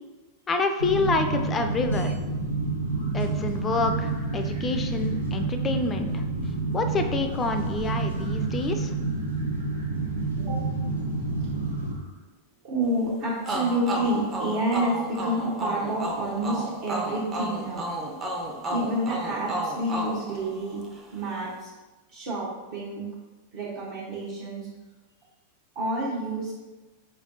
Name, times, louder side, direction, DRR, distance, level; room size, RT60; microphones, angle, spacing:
voice 1, 0.5-2.1 3.1-6.2 6.7-8.9, left 3 dB, 20° left, 7 dB, 0.4 m, -27 dB
sound 1, 0.8-12.0, right 3 dB, 75° right, 0.7 m, -29 dB
voice 2, 12.6-17.9 18.7-20.8 21.1-21.7 22.1-23.0 23.5-24.7 25.7-26.5, right 1 dB, 50° right, -7 dB, 0.9 m, -29 dB
sound 2, 13.5-21.0, right 1 dB, 25° right, 0.6 m, -32 dB
4.8 x 3.3 x 2.6 m, 1.2 s
figure-of-eight pair, 90°, 0 cm